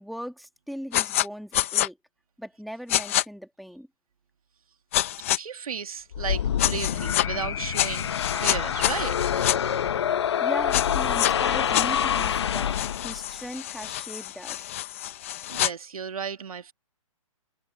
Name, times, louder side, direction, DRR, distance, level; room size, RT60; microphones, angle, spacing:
voice 1, 0.0-2.0 2.4-3.9 10.4-14.7, equal, ahead, 1.6 m, -39 dB
sound 1, 0.9-1.3 1.5-1.9 2.9-3.2 4.9-5.4 6.6-7.3 7.7-9.6 10.7-11.3 11.7-15.7, left 14 dB, 25° left, 0.7 m, -27 dB
voice 2, 5.3-9.4 15.5-16.7, right 6 dB, 85° right, 2.1 m, -34 dB
sound 2, 6.1-13.4, left 9 dB, 50° left, 0.9 m, -26 dB
hypercardioid pair, 170°, 18 cm